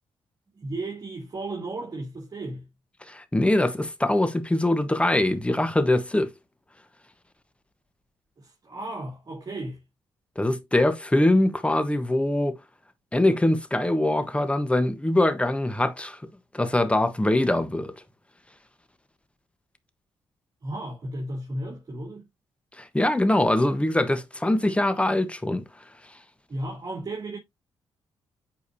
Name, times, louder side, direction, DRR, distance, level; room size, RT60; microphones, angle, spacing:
voice 1, 0.5-2.7 8.4-9.8 20.6-22.3 26.5-27.4, right 2 dB, 40° right, 3.2 m, -34 dB
voice 2, 3.1-6.3 10.4-12.5 13.1-16.2 16.5-17.9 22.8-25.6, left 1 dB, 10° left, 1.1 m, -23 dB
8.5 x 5.0 x 2.7 m
cardioid pair, 85°, 10 cm